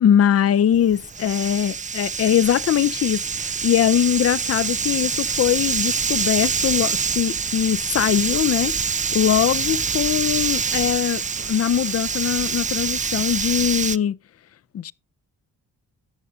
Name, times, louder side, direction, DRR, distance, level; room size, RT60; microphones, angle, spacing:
voice 1, 0.0-14.2 14.7-14.9, left 10 dB, 35° left, 0.5 m, -21 dB
sound 1, 0.7-14.0, right 5 dB, 20° right, 0.4 m, -25 dB
19.5 x 6.5 x 2.6 m
hypercardioid pair, 45°, 43 cm